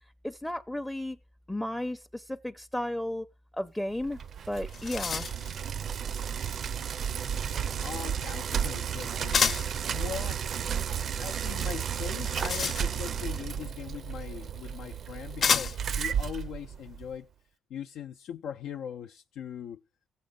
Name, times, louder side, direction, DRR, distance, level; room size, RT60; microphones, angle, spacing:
voice 1, 0.2-1.2 1.5-3.3 3.5-4.2 4.5-5.3, left 1 dB, 5° left, 0.6 m, -33 dB
Bicycle, 4.0-17.1, right 8 dB, 60° right, 0.5 m, -33 dB
sound 1, 4.2-4.3 4.6-5.6 9.3-9.8 12.0-13.2 14.3-14.4 15.4-16.0, left 6 dB, 55° left, 0.8 m, -29 dB
voice 2, 7.8-9.5 9.9-10.5 11.0-17.3 17.7-19.8, left 8 dB, 80° left, 0.5 m, -40 dB
15.5 x 7.5 x 3.8 m
cardioid pair, 90°, 0 cm